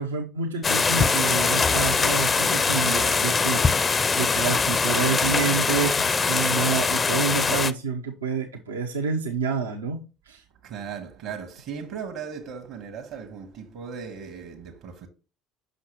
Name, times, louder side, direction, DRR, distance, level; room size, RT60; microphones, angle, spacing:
voice 1, 0.0-10.4, right 5 dB, 85° right, 0.6 m, -28 dB
sound 1, 0.6-7.7, left 4 dB, 30° left, 0.4 m, -22 dB
voice 2, 10.6-15.1, right 6 dB, 65° right, 1.1 m, -37 dB
6.4 x 5.9 x 2.9 m
hypercardioid pair, 65°, 0 cm